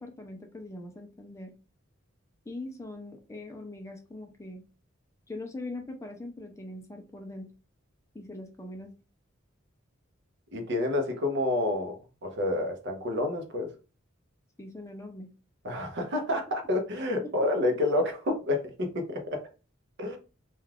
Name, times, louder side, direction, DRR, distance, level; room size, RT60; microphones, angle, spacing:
voice 1, 0.0-1.5 2.5-4.6 5.3-7.5 8.1-8.9 14.6-15.3 17.2-17.3, left 2 dB, 15° left, 0.4 m, -41 dB
voice 2, 10.5-13.7 15.6-19.4 20.0-20.2, left 2 dB, 60° right, 0.7 m, -29 dB
2.3 x 2.3 x 3.3 m
head